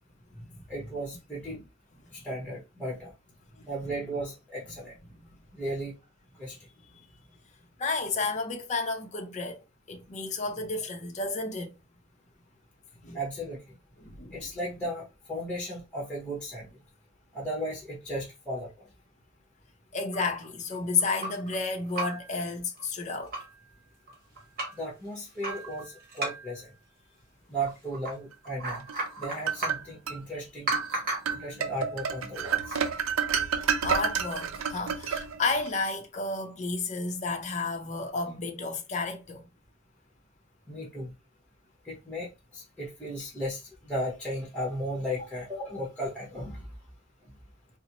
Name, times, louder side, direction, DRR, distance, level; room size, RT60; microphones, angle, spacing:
voice 1, 0.7-1.6 2.1-3.1 3.7-4.9 5.5-5.9 6.4-6.6 13.1-13.6 14.3-16.7 17.3-18.9 24.7-26.7 27.5-28.9 29.2-30.7 31.3-32.8 40.7-41.1 41.8-46.6, equal, 5° left, 0.9 m, -35 dB
voice 2, 7.8-9.6 9.9-11.7 13.0-13.2 14.0-14.3 19.9-23.3 33.8-39.4, left 3 dB, 35° left, 0.6 m, -31 dB
sound 1, 20.1-21.6 21.9-22.4 22.8-22.9 23.1-23.6 24.1-24.8 25.4-26.7 27.6-28.2 28.4-29.9 30.7-31.4 32.6-32.9, right 2 dB, 45° right, 1.4 m, -35 dB
sound 2, 28.9-30.2 30.7-30.9 31.3-35.7, right 7 dB, 80° right, 0.5 m, -30 dB
4.0 x 2.0 x 2.9 m
head